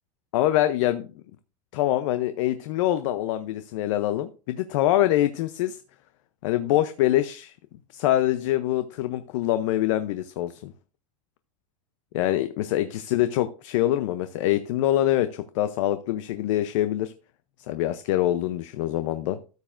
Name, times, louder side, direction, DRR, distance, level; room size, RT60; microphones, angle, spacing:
voice 1, 0.3-1.1 1.7-5.8 6.4-7.5 7.9-10.7 12.1-17.1 17.7-19.4, left 13 dB, 60° left, 11 dB, 0.6 m, -24 dB
13.0 x 7.2 x 2.5 m, 0.35 s
supercardioid pair, 145°, 18 cm